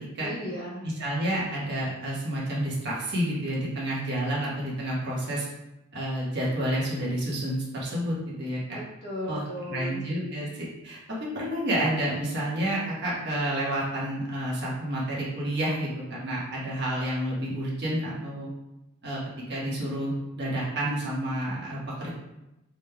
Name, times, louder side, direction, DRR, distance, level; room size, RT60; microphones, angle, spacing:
voice 1, 0.2-0.9 8.7-10.0, equal, 45° left, -6 dB, 1.5 m, -36 dB
voice 2, 0.8-5.5 5.9-8.8 9.3-9.4 9.7-18.5 19.0-19.2 19.5-22.1, right 1 dB, 50° right, -6 dB, 1.3 m, -29 dB
6.3 x 3.5 x 2.2 m, 0.94 s
head